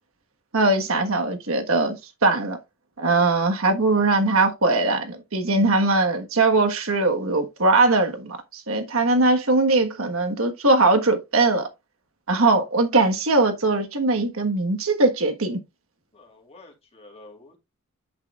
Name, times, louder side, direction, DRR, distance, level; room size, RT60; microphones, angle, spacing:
voice 1, 0.5-2.0 2.2-2.6 3.0-11.7 12.3-15.6, right 2 dB, 70° right, 1.4 m, -21 dB
voice 2, 16.1-17.6, left 2 dB, 30° left, 2.5 m, -49 dB
8.3 x 7.6 x 2.4 m
head